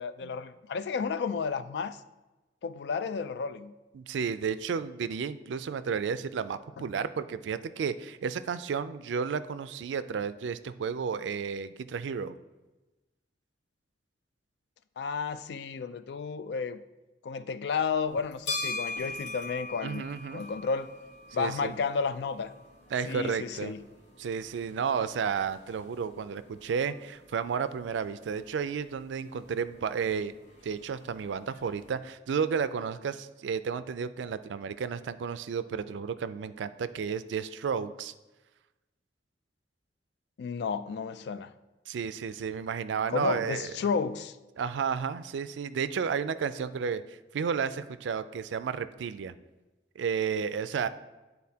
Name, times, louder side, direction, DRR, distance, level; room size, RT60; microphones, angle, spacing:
voice 1, 0.0-2.0 2.6-3.7 15.0-16.8 17.2-20.0 20.3-20.9 21.3-22.5 23.1-23.8 40.4-41.5 43.1-44.4, left 5 dB, 65° left, 0.3 m, -32 dB
voice 2, 3.9-12.4 19.8-20.4 21.3-21.7 22.9-23.7 24.2-30.4 30.6-38.1 41.9-43.7 44.6-49.3 50.0-50.9, right 6 dB, 85° right, 0.4 m, -32 dB
sound 1, 18.1-31.9, left 2 dB, 85° left, 1.8 m, -43 dB
10.5 x 4.0 x 2.8 m
head